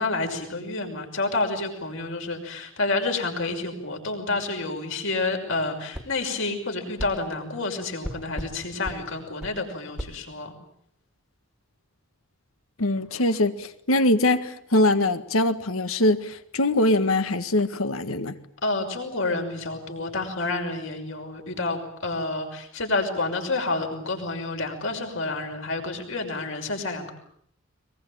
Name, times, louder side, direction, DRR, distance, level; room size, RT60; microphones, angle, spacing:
voice 1, 0.0-10.5 18.6-27.1, left 3 dB, 65° left, 3 dB, 6.0 m, -29 dB
sound 1, 5.9-6.1 7.0-7.2 8.0-8.5 8.8-9.0 9.4-9.6 10.0-10.1, equal, 5° right, 1.8 m, -34 dB
voice 2, 12.8-18.4, left 1 dB, 80° left, 11 dB, 1.7 m, -22 dB
22.5 x 22.5 x 8.8 m, 0.69 s
head